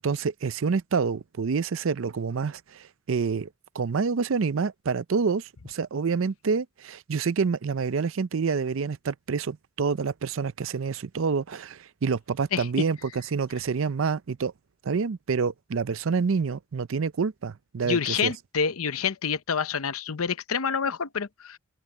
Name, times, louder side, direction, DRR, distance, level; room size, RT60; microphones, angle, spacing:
voice 1, 0.0-3.5 3.7-14.5 14.8-18.3, right 5 dB, 70° right, 0.5 m, -27 dB
voice 2, 17.8-21.6, left 6 dB, 85° left, 0.8 m, -27 dB
open air
head